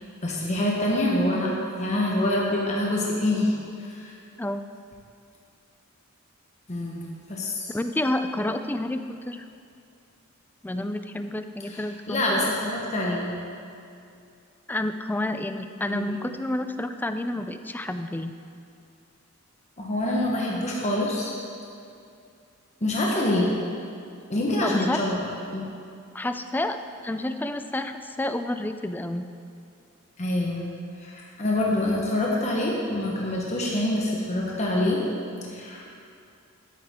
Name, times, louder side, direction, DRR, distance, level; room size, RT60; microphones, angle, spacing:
voice 1, 0.2-4.1 6.7-7.0 7.3-7.7 11.7-13.3 15.9-16.0 19.8-21.3 22.8-23.5 24.3-25.2 25.5-25.7 30.2-30.6 31.0-35.0 35.4-35.8, left 1 dB, 35° left, -3 dB, 1.1 m, -26 dB
voice 2, 7.7-9.4 10.6-12.4 14.7-18.3 24.6-25.0 26.1-26.8 27.0-29.2, left 1 dB, 10° left, 9 dB, 0.3 m, -29 dB
12.5 x 8.6 x 3.6 m, 2.5 s
head